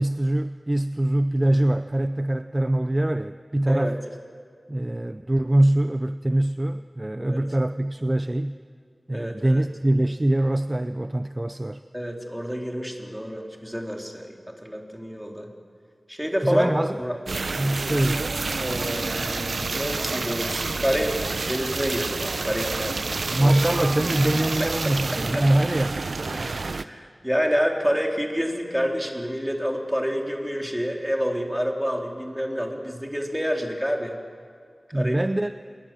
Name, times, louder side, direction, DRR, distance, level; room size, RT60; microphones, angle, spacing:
voice 1, 0.0-4.0 4.7-8.6 9.1-11.8 16.4-17.0 17.5-18.3 23.3-26.1 34.9-35.5, right 1 dB, 25° right, 10 dB, 0.6 m, -23 dB
voice 2, 9.1-9.6 11.9-15.5 16.1-16.7 17.0-17.2 18.6-23.6 24.6-25.4 26.3-34.2 34.9-35.2, equal, 5° right, 1 dB, 3.7 m, -28 dB
sound 1, 17.3-26.8, right 3 dB, 85° right, 0.7 m, -29 dB
27.5 x 21.5 x 7.6 m, 2.2 s
wide cardioid pair, 65°, 0 cm